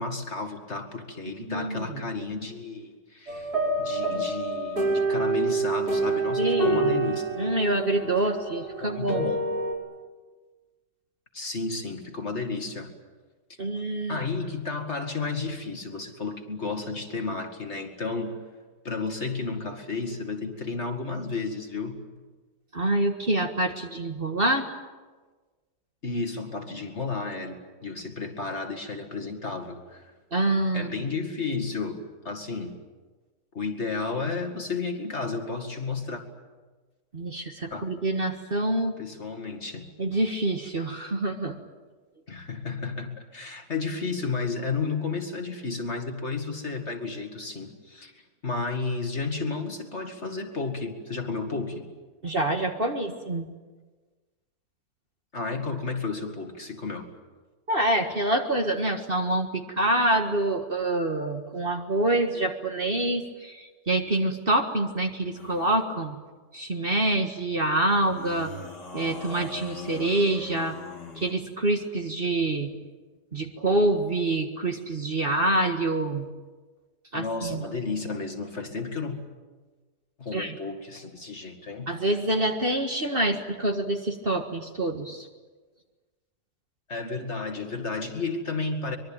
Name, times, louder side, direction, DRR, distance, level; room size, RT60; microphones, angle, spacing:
voice 1, 0.0-3.5 3.8-7.3 8.8-9.4 11.3-12.9 14.1-18.4 18.8-22.0 26.0-30.1 30.7-32.8 33.5-36.2 37.7-37.9 39.0-39.9 42.3-51.9 55.3-57.1 77.1-79.2 80.2-81.9 86.9-89.0, left 4 dB, 40° left, 4 dB, 2.5 m, -32 dB
voice 2, 1.4-2.0 6.4-7.0 7.4-9.3 13.6-14.2 22.7-24.7 30.3-30.9 37.1-39.0 40.0-41.6 52.2-53.5 57.7-66.2 66.5-68.5 68.9-70.8 71.2-72.7 73.3-76.3 77.1-77.6 80.3-80.6 81.9-85.3, right 2 dB, 35° right, 4 dB, 1.8 m, -26 dB
sound 1, 3.3-9.7, right 3 dB, 65° right, 6.1 m, -27 dB
sound 2, 65.3-65.8 68.0-71.4, left 3 dB, 80° left, 3.2 m, -40 dB
24.5 x 22.5 x 9.0 m, 1.3 s
omnidirectional pair, 1.8 m